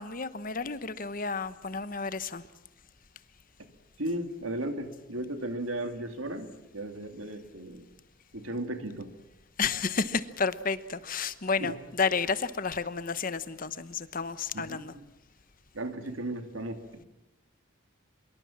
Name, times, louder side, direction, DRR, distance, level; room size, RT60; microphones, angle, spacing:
voice 1, 0.0-2.5 9.6-14.9, left 5 dB, 40° left, 1.0 m, -31 dB
voice 2, 4.0-7.8 8.3-9.1 11.6-11.7 14.5-15.0 15.7-17.1, right 1 dB, 85° right, 2.9 m, -35 dB
24.5 x 23.0 x 7.4 m
head